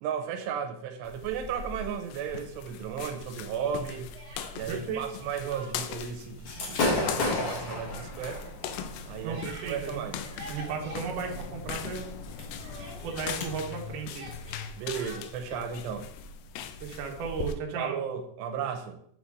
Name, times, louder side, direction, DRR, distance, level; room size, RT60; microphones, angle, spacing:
voice 1, 0.0-4.1 4.5-8.5 9.1-10.2 14.8-16.1 17.8-19.0, right 7 dB, 85° right, 2.8 m, -35 dB
sound 1, 1.0-17.5, left 6 dB, 85° left, 2.2 m, -40 dB
Speech, 3.5-4.9 5.2-6.0 6.3-12.0 12.3-15.7, equal, 40° right, 1.7 m, -48 dB
voice 2, 4.7-5.0 9.2-10.0 10.5-12.1 13.0-14.3 16.8-18.0, right 5 dB, 65° right, 2.2 m, -35 dB
Gunshot gunfire / Fireworks, 6.4-13.4, left 2 dB, 65° left, 1.3 m, -34 dB
6.9 x 4.0 x 4.8 m
omnidirectional pair, 4.9 m